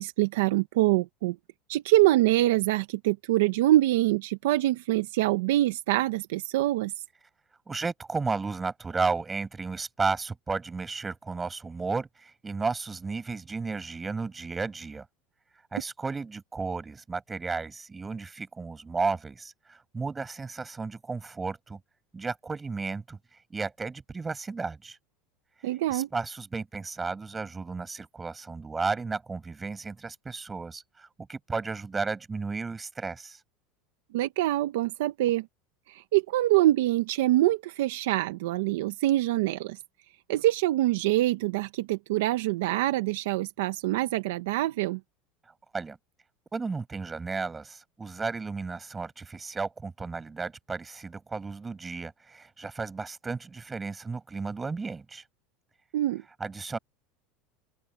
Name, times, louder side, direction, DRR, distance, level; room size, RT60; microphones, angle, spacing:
voice 1, 0.0-1.4 1.7-6.9 25.6-26.1 34.1-35.5 35.9-39.8 40.3-45.0 55.9-56.2, right 16 dB, 90° right, 0.9 m, -25 dB
voice 2, 7.7-15.0 15.7-21.8 22.1-23.2 23.5-25.0 25.6-33.4 45.7-46.0 46.5-55.2 56.4-56.8, right 4 dB, 10° right, 6.7 m, -33 dB
open air
supercardioid pair, 165°, 0 cm